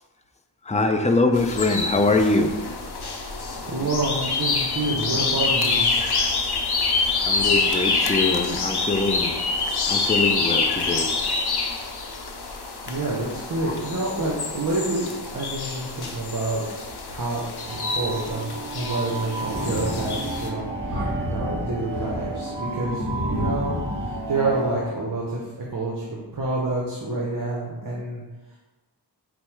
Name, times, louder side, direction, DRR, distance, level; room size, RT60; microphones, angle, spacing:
voice 1, 0.6-2.5 3.5-3.6 7.2-9.4 9.9-11.1 13.6-13.7, left 3 dB, 20° left, 5 dB, 0.3 m, -23 dB
sound 1, 1.3-20.5, left 4 dB, 70° left, 0.6 m, -26 dB
voice 2, 3.6-5.8 12.8-15.1 15.3-16.6 17.1-17.4 17.7-25.4 25.7-28.2, right 2 dB, 50° right, -3 dB, 0.7 m, -28 dB
sound 2, 17.6-24.8, right 3 dB, 85° right, 0.5 m, -33 dB
Thunder, 19.4-24.5, left 1 dB, 30° right, 1.4 m, -31 dB
4.4 x 2.1 x 4.4 m, 1.2 s
wide cardioid pair, 55°, 42 cm